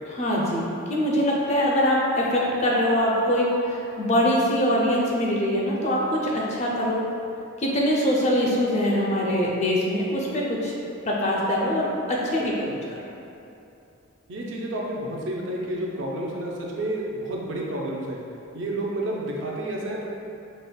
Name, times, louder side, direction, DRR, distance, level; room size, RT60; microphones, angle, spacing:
voice 1, 0.1-7.0 7.6-10.7 11.1-12.5, equal, 30° left, -4 dB, 0.4 m, -23 dB
voice 2, 12.4-12.8 14.3-18.2 18.5-20.1, right 1 dB, 60° right, -3 dB, 0.4 m, -30 dB
5.0 x 2.0 x 2.2 m, 2.8 s
head